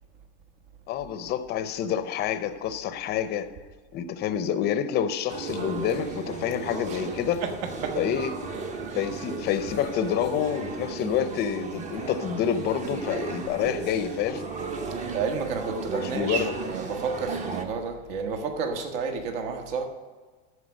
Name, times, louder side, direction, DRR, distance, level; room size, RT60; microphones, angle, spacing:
voice 1, 0.9-3.5 3.9-7.4 8.0-8.3 8.9-14.5 16.0-16.5, left 9 dB, 30° left, 0.7 m, -28 dB
sound 1, 5.3-17.6, right 4 dB, 20° right, 0.9 m, -35 dB
voice 2, 7.4-8.0 8.9-9.0 15.1-19.9, right 5 dB, 60° right, 1.6 m, -31 dB
13.5 x 4.7 x 6.4 m
supercardioid pair, 145°, 34 cm